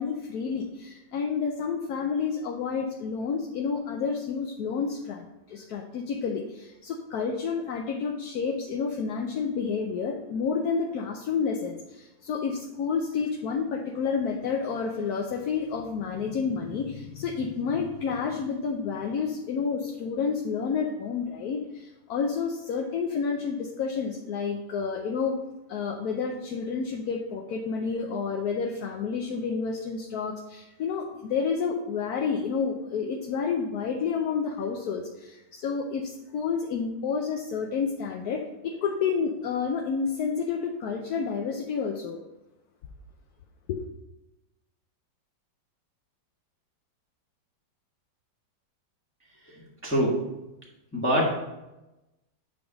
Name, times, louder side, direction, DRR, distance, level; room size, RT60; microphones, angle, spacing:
voice 1, 0.0-25.4 25.7-42.2 43.7-43.9, left 5 dB, 70° left, 1 dB, 1.0 m, -30 dB
voice 2, 49.5-50.3 50.9-51.6, equal, 10° left, -4 dB, 1.1 m, -26 dB
8.8 x 3.5 x 4.9 m, 0.98 s
omnidirectional pair, 2.0 m